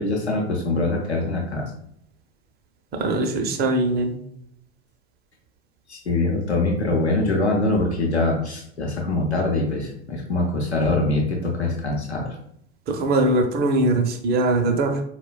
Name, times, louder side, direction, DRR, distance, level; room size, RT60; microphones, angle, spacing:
voice 1, 0.0-1.7 5.9-12.3, left 2 dB, 90° left, 0 dB, 0.7 m, -23 dB
voice 2, 2.9-4.1 12.9-15.0, right 2 dB, 30° right, 5 dB, 0.5 m, -21 dB
4.2 x 2.1 x 2.3 m, 0.70 s
figure-of-eight pair, 75°, 32 cm